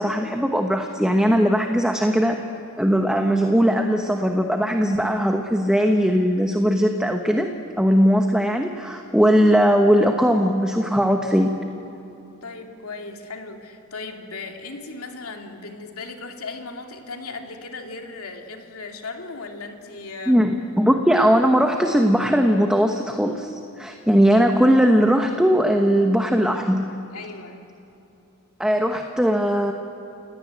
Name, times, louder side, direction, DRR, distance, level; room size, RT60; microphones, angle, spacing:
voice 1, 0.0-2.4 2.8-7.5 7.8-11.5 20.3-20.5 20.8-26.9 28.6-29.7, equal, 5° right, 3 dB, 1.0 m, -19 dB
voice 2, 12.4-20.4 27.1-27.6, left 3 dB, 90° left, 3 dB, 2.6 m, -37 dB
30.0 x 17.5 x 9.2 m, 2.8 s
head